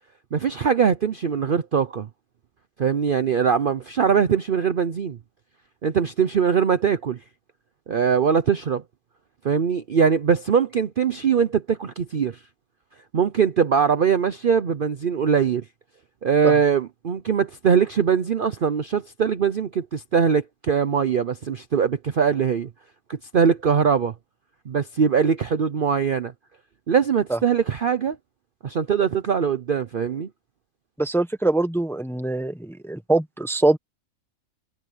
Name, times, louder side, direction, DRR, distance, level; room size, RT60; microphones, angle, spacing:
voice 1, 0.3-2.1 2.8-5.2 5.8-7.2 7.9-8.8 9.4-12.4 13.1-15.6 16.2-22.7 23.1-24.1 24.7-26.3 26.9-28.2 28.6-30.3, right 6 dB, 50° right, 0.7 m, -21 dB
voice 2, 31.0-33.8, right 2 dB, ahead, 0.9 m, -23 dB
omnidirectional pair, 1.5 m